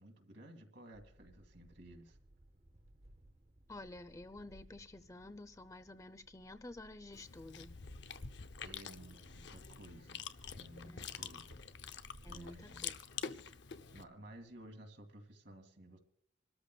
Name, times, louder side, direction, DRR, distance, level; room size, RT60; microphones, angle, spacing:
voice 1, 0.0-2.2 8.6-10.3 10.5-11.6 12.3-12.9 13.9-16.0, right 1 dB, 65° right, 2.2 m, -55 dB
sound 1, 0.9-14.8, right 1 dB, 35° right, 0.7 m, -63 dB
voice 2, 3.7-7.8 10.8-11.1 12.2-13.0, left 2 dB, 15° left, 0.6 m, -51 dB
Chewing mastication, 7.1-14.0, left 7 dB, 65° left, 0.6 m, -47 dB
26.5 x 13.5 x 2.3 m
head